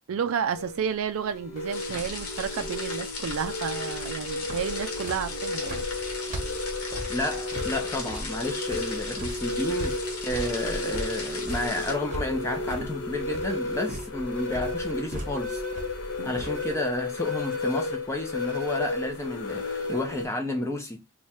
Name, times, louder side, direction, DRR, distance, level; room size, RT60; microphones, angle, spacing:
voice 1, 0.1-5.8 16.2-16.4, right 7 dB, 70° right, 0.3 m, -31 dB
sound 1, 0.5-20.3, left 3 dB, 55° left, 0.8 m, -33 dB
sound 2, 1.7-11.9, left 3 dB, 85° left, 1.0 m, -38 dB
sound 3, 1.9-16.7, right 1 dB, 35° right, 1.0 m, -39 dB
voice 2, 7.1-15.6 16.2-21.0, left 1 dB, 10° left, 0.7 m, -31 dB
3.1 x 2.3 x 4.2 m
head